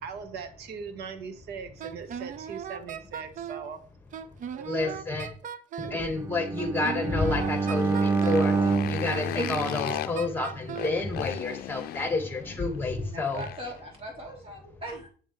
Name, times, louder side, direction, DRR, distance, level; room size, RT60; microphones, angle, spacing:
voice 1, 0.0-3.8 4.5-5.0 5.8-6.2, right 6 dB, 75° right, 9 dB, 1.2 m, -40 dB
Wind instrument woodwind instrument, 1.8-3.7 4.1-6.0 6.6-8.5 9.1-11.0, right 8 dB, 50° right, 0.6 m, -38 dB
voice 2, 4.7-5.3 5.8-13.5, left 3 dB, 10° left, 5 dB, 1.7 m, -30 dB
Bowed string instrument, 6.2-10.4, right 4 dB, 15° right, 0.3 m, -28 dB
Motorcycle, 7.2-13.8, left 13 dB, 65° left, 0.5 m, -37 dB
voice 3, 13.0-15.1, right 1 dB, 35° right, -1 dB, 3.2 m, -40 dB
7.4 x 7.3 x 3.2 m, 0.43 s
cardioid pair, 110°, 17 cm